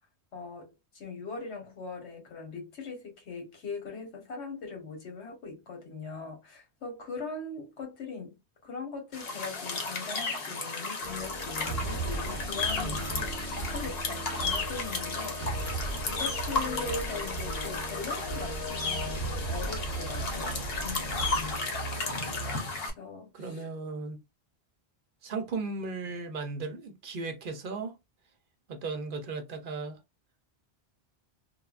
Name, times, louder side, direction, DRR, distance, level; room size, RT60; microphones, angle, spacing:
voice 1, 0.3-8.4 8.6-15.8 16.1-20.6 20.8-21.6 23.0-23.7, left 4 dB, 85° left, 1.4 m, -40 dB
sound 1, 9.1-22.9, left 3 dB, 65° left, 1.0 m, -34 dB
sound 2, 11.0-22.6, right 2 dB, 25° left, 0.9 m, -36 dB
voice 2, 12.8-13.3 23.3-24.2 25.2-27.9 28.7-30.0, right 3 dB, 60° right, 0.7 m, -36 dB
3.2 x 2.1 x 2.3 m
omnidirectional pair, 1.1 m